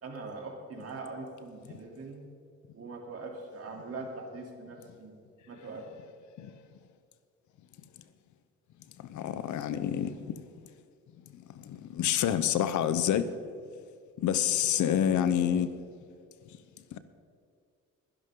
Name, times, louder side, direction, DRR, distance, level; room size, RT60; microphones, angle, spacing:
voice 1, 0.0-2.3 2.7-5.1 5.5-5.8, right 3 dB, 50° right, 3.3 m, -42 dB
voice 2, 9.1-10.1 11.9-13.2 14.2-15.7, left 10 dB, 75° left, 0.9 m, -27 dB
21.5 x 11.0 x 3.8 m
cardioid pair, 90°, 30 cm